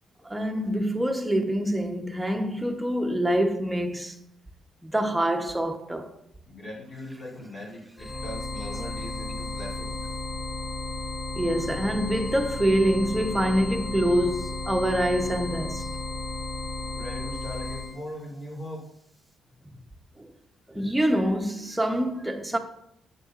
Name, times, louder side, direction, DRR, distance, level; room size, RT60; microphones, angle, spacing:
voice 1, 0.2-4.2 4.8-6.2 11.4-15.9 20.2-20.3 20.7-22.6, equal, 5° right, 0.8 m, -25 dB
voice 2, 6.5-10.0 16.9-18.9, left 1 dB, 55° left, 2.4 m, -40 dB
sound 1, 8.0-17.9, left 3 dB, 25° left, 3.0 m, -33 dB
8.1 x 6.7 x 2.5 m
cardioid pair, 90°, 0 cm